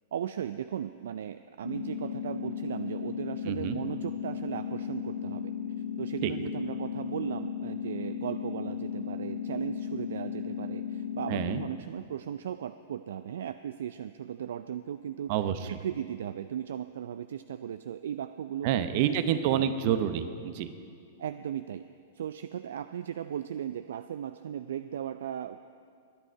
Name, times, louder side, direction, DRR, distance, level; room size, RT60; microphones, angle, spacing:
voice 1, 0.1-5.5 6.0-15.3 15.6-19.2 19.5-19.7 21.2-21.8 22.1-25.6, right 9 dB, 65° right, 12 dB, 0.4 m, -37 dB
sound 1, 1.6-11.7, left 8 dB, 80° left, 0.9 m, -36 dB
voice 2, 3.4-3.8 6.2-6.3 11.3-11.6 15.3-15.6 18.6-20.7, right 10 dB, 50° right, 11 dB, 0.9 m, -28 dB
21.0 x 10.0 x 4.6 m, 2.3 s
figure-of-eight pair, 105°, 0 cm